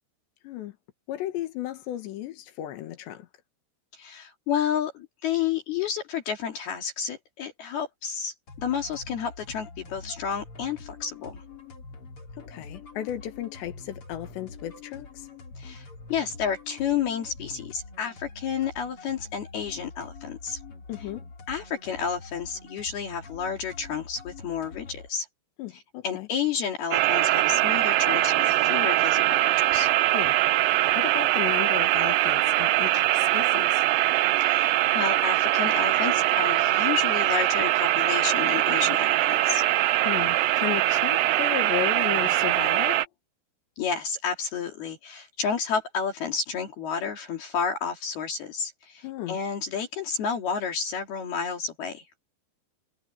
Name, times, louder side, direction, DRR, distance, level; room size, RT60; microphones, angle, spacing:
voice 1, 0.4-0.8 1.1-3.3 12.5-15.3 20.9-21.3 25.6-26.3 30.1-30.4 31.0-33.8 40.1-43.0 49.0-49.4, left 12 dB, 80° left, 3.9 m, -34 dB
voice 2, 3.9-11.4 15.6-20.6 21.5-25.3 26.0-29.9 34.4-39.6 43.8-52.0, left 7 dB, 65° left, 4.5 m, -31 dB
sound 1, 8.5-25.1, left 4 dB, 35° left, 3.6 m, -45 dB
sound 2, 26.9-43.0, right 16 dB, 80° right, 2.0 m, -22 dB
omnidirectional pair, 5.0 m